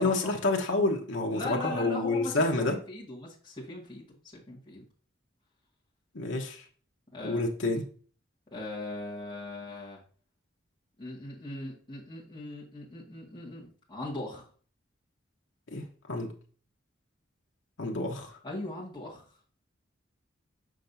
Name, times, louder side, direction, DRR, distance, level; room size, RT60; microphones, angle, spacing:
voice 1, 0.0-2.8 6.1-6.6 7.2-7.8 15.7-16.3 17.8-18.4, left 2 dB, 75° left, 1 dB, 1.1 m, -28 dB
voice 2, 1.3-4.8 7.1-7.4 8.5-10.0 11.0-14.4 18.4-19.2, left 2 dB, 25° left, -6 dB, 1.8 m, -39 dB
6.3 x 5.7 x 2.7 m, 0.42 s
head